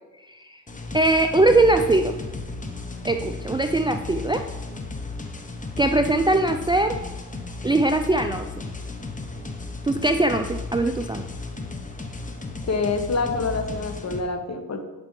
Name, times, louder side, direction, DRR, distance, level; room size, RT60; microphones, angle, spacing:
sound 1, 0.7-14.2, left 3 dB, 20° left, 0.9 m, -34 dB
voice 1, 0.9-2.2 3.0-4.4 5.8-6.9 7.6-8.5 9.8-11.2, right 2 dB, 10° right, 6 dB, 0.4 m, -21 dB
voice 2, 12.7-14.8, left 3 dB, 40° left, 6 dB, 1.1 m, -26 dB
10.5 x 5.1 x 3.2 m, 1.1 s
supercardioid pair, 55°, 39 cm